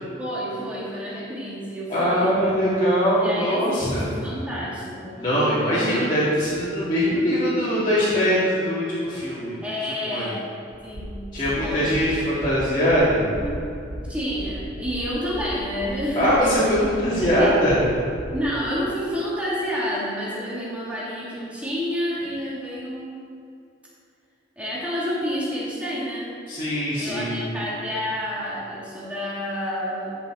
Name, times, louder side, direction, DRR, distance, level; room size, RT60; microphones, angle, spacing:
voice 1, 0.2-2.3 3.2-5.2 9.6-10.4 10.8-11.9 13.4-13.6 14.0-16.3 17.2-17.5 18.3-23.2 24.6-26.3 27.0-30.1, equal, 5° right, -7 dB, 2.5 m, -29 dB
voice 2, 1.9-4.1 5.1-9.6 10.1-10.2 11.3-13.2 16.2-17.8 26.5-27.5, equal, 25° left, -13 dB, 2.4 m, -22 dB
sound 1, 10.7-18.4, equal, 40° right, 1.4 m, -36 dB
13.5 x 7.0 x 3.9 m, 2.5 s
head